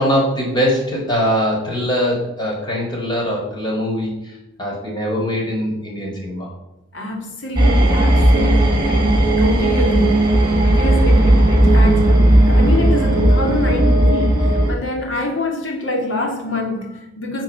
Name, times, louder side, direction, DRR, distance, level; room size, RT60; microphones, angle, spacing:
voice 1, 0.0-6.5 8.4-8.5, equal, 25° left, -2 dB, 4.5 m, -22 dB
voice 2, 6.9-10.3 10.6-17.4, left 1 dB, 75° left, 2 dB, 2.8 m, -25 dB
sound 1, 7.6-14.7, right 1 dB, 25° right, 3.8 m, -14 dB
10.5 x 7.3 x 7.4 m, 0.88 s
head